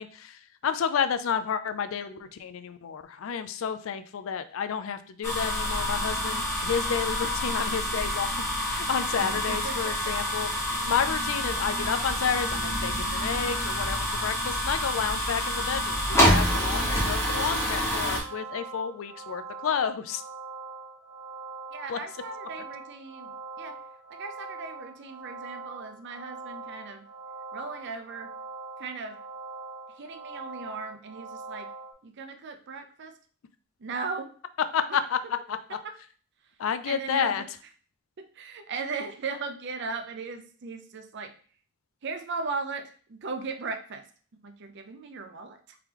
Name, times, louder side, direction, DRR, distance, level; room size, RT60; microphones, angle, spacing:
voice 1, 0.0-10.5 10.8-20.2 21.9-22.0 34.7-35.2 35.5-35.6 36.6-37.4, left 7 dB, 70° left, 11 dB, 0.4 m, -30 dB
sound 1, 5.2-18.2, equal, 15° left, 1.2 m, -27 dB
voice 2, 9.2-10.2 21.7-23.8 24.1-27.0 27.5-28.3 28.8-29.2 30.0-31.7 32.0-33.1 33.8-34.3 34.9-35.0 35.8-35.9 36.9-37.4 38.2-41.3 42.0-44.1 44.3-45.8, right 4 dB, 60° right, 6 dB, 0.5 m, -37 dB
sound 2, 15.9-31.9, right 4 dB, 90° right, 0.9 m, -42 dB
3.7 x 3.3 x 3.0 m, 0.43 s
head